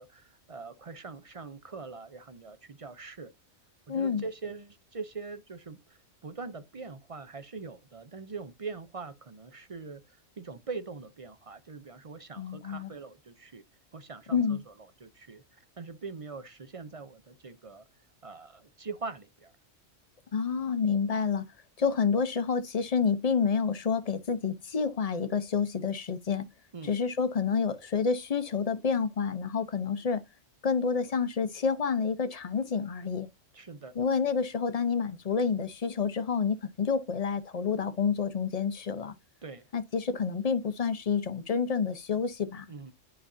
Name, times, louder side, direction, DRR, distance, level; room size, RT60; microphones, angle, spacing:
voice 1, 0.0-3.3 3.9-13.6 13.9-17.9 18.2-19.5 26.7-26.9 33.5-34.0 39.4-39.7 42.7-42.9, right 4 dB, 40° right, 0.5 m, -42 dB
voice 2, 3.9-4.2 12.4-12.9 14.3-14.6 20.3-21.5 21.8-26.5 26.8-30.2 30.6-33.3 34.0-39.1 39.7-42.7, left 6 dB, 40° left, 0.7 m, -29 dB
9.9 x 5.1 x 2.6 m
omnidirectional pair, 1.3 m